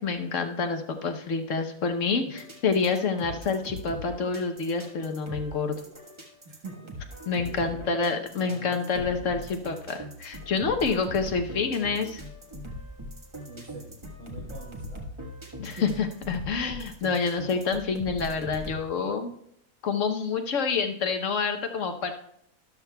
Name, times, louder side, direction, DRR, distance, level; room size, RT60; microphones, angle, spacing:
voice 1, 0.0-5.8 7.3-12.2 15.6-19.3 19.8-22.1, left 5 dB, 60° left, 6 dB, 1.2 m, -28 dB
sound 1, 2.3-18.8, equal, 20° right, 1.3 m, -41 dB
voice 2, 6.5-7.0 7.3-7.9 8.3-9.5 13.5-15.0 15.8-15.9, right 2 dB, 55° right, -2 dB, 1.7 m, -45 dB
13.0 x 12.5 x 2.3 m, 0.73 s
omnidirectional pair, 1.5 m